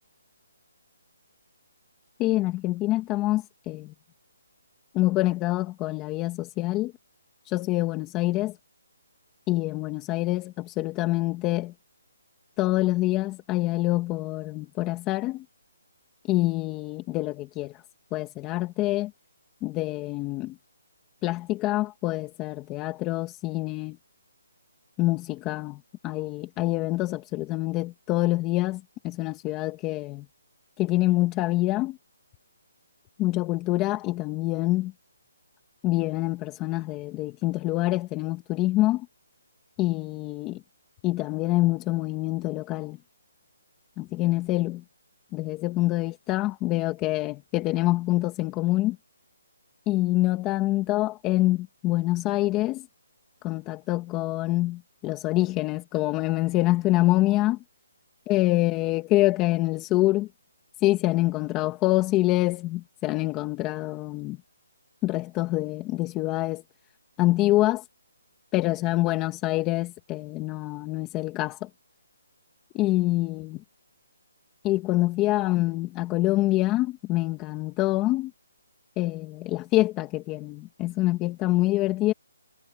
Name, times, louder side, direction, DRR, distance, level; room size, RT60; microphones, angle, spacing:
voice 1, 2.2-3.9 4.9-6.9 7.4-8.5 9.5-11.7 12.6-15.4 16.3-17.8 18.1-19.1 19.6-20.5 21.2-24.0 25.0-30.2 30.8-32.0 33.2-34.9 35.8-39.1 39.8-40.6 41.0-43.0 44.0-44.8 45.3-49.0 49.9-52.9 53.4-57.6 58.3-60.3 60.8-64.4 65.0-66.6 67.2-67.8 68.5-71.7 72.7-73.6 74.6-78.3 79.0-82.1, left 17 dB, 15° left, 1.4 m, -26 dB
hypercardioid pair, 170°, 0 cm